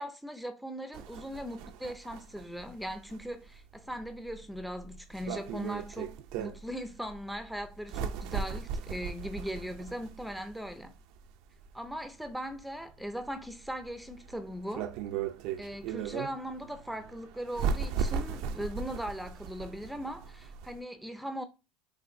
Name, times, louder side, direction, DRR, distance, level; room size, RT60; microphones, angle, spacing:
voice 1, 0.0-10.9 11.7-14.9 15.6-21.4, equal, ahead, 0.5 m, -39 dB
sound 1, 0.9-20.8, right 6 dB, 65° right, 0.5 m, -38 dB
6.2 x 2.6 x 2.6 m
supercardioid pair, 110°, 0 cm